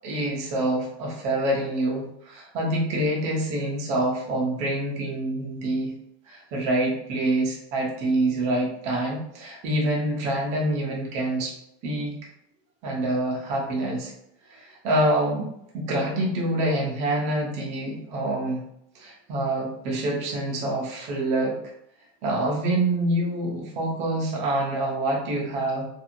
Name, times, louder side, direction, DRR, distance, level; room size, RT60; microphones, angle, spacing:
voice 1, 0.0-5.9 6.3-11.5 11.8-12.2 12.8-14.1 14.5-15.5 15.7-18.6 18.9-21.6 22.2-25.9, right 1 dB, 20° right, -2 dB, 0.4 m, -26 dB
2.5 x 2.5 x 2.8 m, 0.76 s
supercardioid pair, 180°, 33 cm